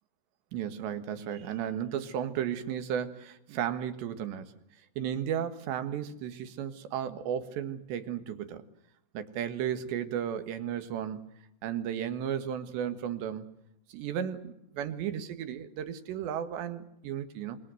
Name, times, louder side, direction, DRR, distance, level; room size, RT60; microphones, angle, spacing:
voice 1, 0.5-4.5 5.0-8.6 9.1-11.2 11.6-13.5 13.9-17.6, right 9 dB, 90° right, 10 dB, 3.8 m, -34 dB
27.0 x 22.5 x 7.8 m, 0.80 s
omnidirectional pair, 4.9 m